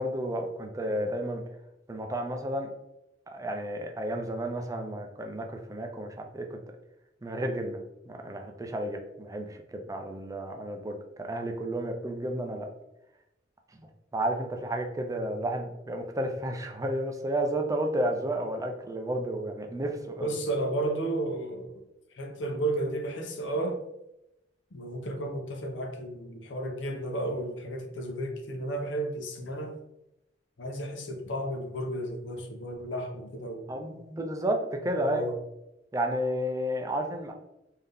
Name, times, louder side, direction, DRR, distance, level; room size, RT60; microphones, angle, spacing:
voice 1, 0.0-1.4 1.9-2.7 3.3-6.5 7.2-7.8 8.1-12.7 13.8-13.9 14.1-20.3 33.7-35.2 35.9-37.3, right 1 dB, 20° right, 3 dB, 0.4 m, -32 dB
voice 2, 20.2-21.7 22.1-23.8 24.7-29.8 30.6-33.7 35.0-35.4, right 1 dB, 85° left, 4 dB, 0.7 m, -33 dB
3.8 x 2.7 x 3.3 m, 0.90 s
head